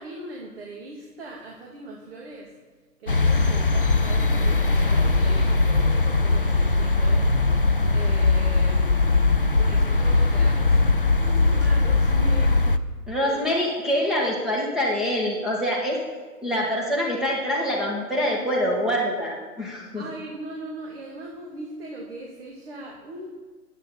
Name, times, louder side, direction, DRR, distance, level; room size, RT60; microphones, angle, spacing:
voice 1, 0.0-2.5 3.0-7.3 7.9-9.2 9.5-10.9 11.2-12.7 13.2-13.5 19.9-23.3, right 2 dB, 35° right, -2 dB, 2.3 m, -39 dB
sound 1, 3.1-12.8, left 3 dB, 35° left, 0.4 m, -20 dB
voice 2, 13.1-16.0 16.4-20.0, equal, ahead, -4 dB, 1.6 m, -25 dB
11.0 x 9.0 x 7.0 m, 1.5 s
figure-of-eight pair, 145°, 48 cm